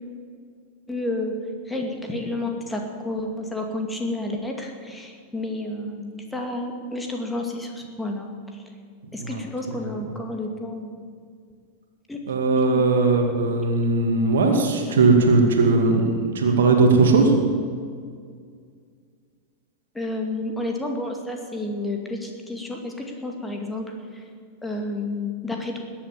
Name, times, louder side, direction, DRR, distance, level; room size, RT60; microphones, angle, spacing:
voice 1, 0.9-1.3 1.6-8.6 9.1-11.1 12.1-12.2 12.6-12.9 19.9-24.3 24.6-25.8, left 2 dB, 5° left, 2 dB, 2.2 m, -30 dB
voice 2, 12.3-17.3, right 3 dB, 65° right, 3 dB, 2.1 m, -19 dB
20.5 x 8.5 x 7.3 m, 2.1 s
figure-of-eight pair, 90°, 0 cm